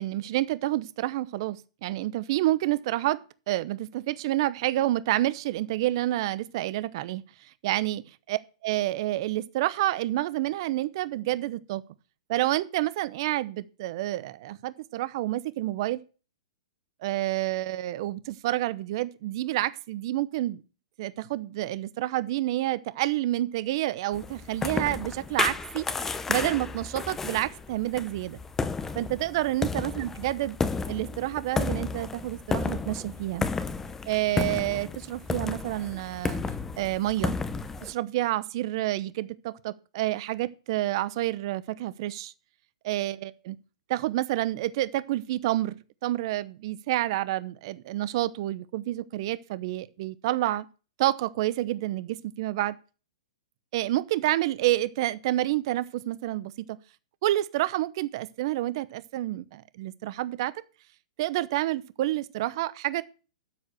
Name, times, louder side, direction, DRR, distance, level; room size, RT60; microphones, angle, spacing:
voice 1, 0.0-3.2 3.5-7.2 7.6-11.8 12.3-16.0 17.0-20.6 21.0-25.9 26.3-28.4 28.9-30.6 30.9-33.5 34.1-36.4 36.8-37.3 37.8-42.3 42.8-43.6 43.9-50.7 51.0-52.8 53.7-56.8 57.2-60.5 61.2-63.0, right 15 dB, 50° right, 0.8 m, -29 dB
sound 1, 24.1-37.9, left 4 dB, 10° left, 0.7 m, -32 dB
12.5 x 4.8 x 6.4 m
hypercardioid pair, 140°, 3 cm